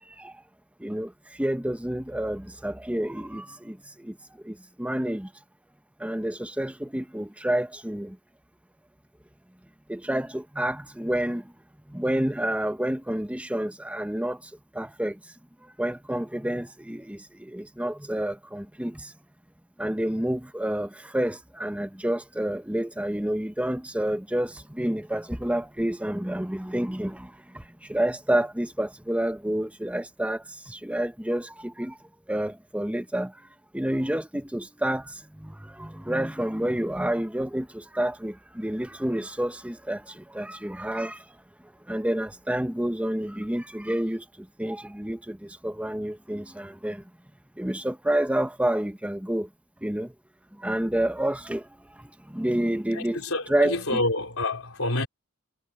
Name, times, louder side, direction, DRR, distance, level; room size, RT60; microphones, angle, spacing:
voice 1, 0.8-1.1 1.4-4.2 4.4-5.3 6.0-8.2 9.9-11.5 11.9-15.2 15.8-19.1 19.8-32.0 32.3-33.3 33.7-41.2 41.9-47.0 47.6-49.5 49.8-50.1 50.6-51.7 52.0-53.2 53.5-54.0, right 1 dB, 5° right, 1.0 m, -29 dB
voice 2, 52.9-55.1, left 2 dB, 75° left, 4.4 m, -28 dB
head